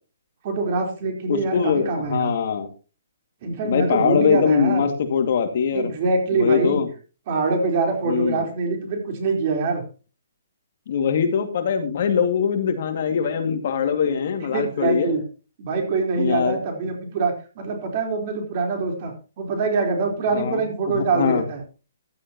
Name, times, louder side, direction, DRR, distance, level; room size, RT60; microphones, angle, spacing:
voice 1, 0.4-2.3 3.4-4.9 5.7-6.8 7.3-9.8 14.4-15.2 15.6-21.6, right 4 dB, 40° right, 3 dB, 4.2 m, -24 dB
voice 2, 1.3-2.7 3.6-5.9 6.3-6.9 8.1-8.4 10.9-15.1 16.2-16.6 20.3-20.6 20.9-21.4, left 6 dB, 50° left, 6 dB, 2.3 m, -22 dB
15.5 x 11.5 x 3.0 m, 0.34 s
hypercardioid pair, 160°, 0 cm